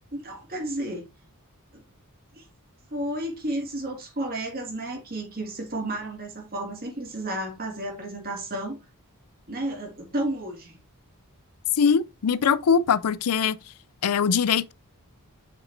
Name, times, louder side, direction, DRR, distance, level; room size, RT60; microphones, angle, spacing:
voice 1, 0.1-1.1 1.7-1.8 2.3-2.4 2.9-8.8 9.5-10.8, right 1 dB, 45° right, 2.1 m, -32 dB
voice 2, 11.7-13.6 14.0-14.7, left 6 dB, 90° left, 0.5 m, -22 dB
7.0 x 5.9 x 2.7 m
head